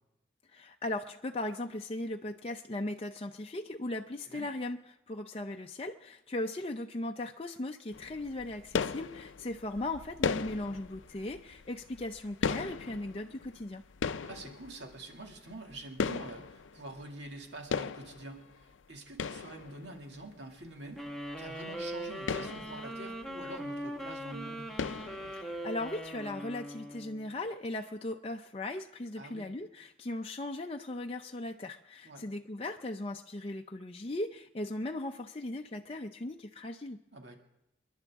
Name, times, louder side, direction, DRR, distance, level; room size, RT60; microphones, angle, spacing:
voice 1, 0.5-4.8 5.1-13.8 25.3-37.0, left 2 dB, 30° left, 3 dB, 0.5 m, -38 dB
sound 1, 7.9-17.4 17.7-20.2 20.7-20.8 21.1-21.2 21.4-21.6 22.0-23.8 24.1-24.4 24.8-25.8, left 5 dB, 85° left, 0.5 m, -38 dB
voice 2, 14.2-24.7 29.2-29.5 32.0-32.2 37.1-37.4, right 2 dB, 65° right, 2 dB, 2.2 m, -46 dB
sound 2, 21.0-27.4, right 1 dB, ahead, 1.4 m, -41 dB
29.0 x 11.0 x 3.6 m, 0.87 s
head